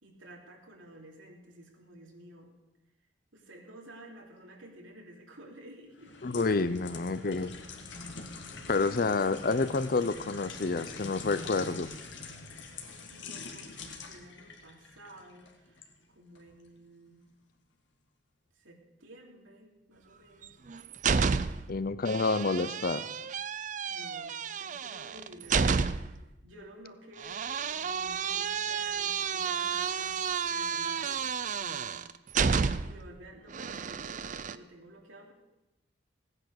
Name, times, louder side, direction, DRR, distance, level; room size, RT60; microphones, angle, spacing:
voice 1, 0.0-2.5 3.3-6.1 7.4-7.5 13.1-15.8 16.1-17.2 18.5-20.6 21.4-21.6 23.9-32.1 32.8-35.3, right 1 dB, 90° right, 0 dB, 3.0 m, -52 dB
sound 1, 5.9-15.9 16.3-16.5, left 4 dB, 65° left, 1.9 m, -44 dB
voice 2, 6.2-7.5 8.7-11.9 21.7-23.1, left 3 dB, 50° left, 14 dB, 0.6 m, -29 dB
sound 2, 20.4-21.7 22.1-26.2 27.2-33.1 33.5-34.6, right 6 dB, 40° right, 0.5 m, -31 dB
16.0 x 9.8 x 6.6 m, 0.98 s
head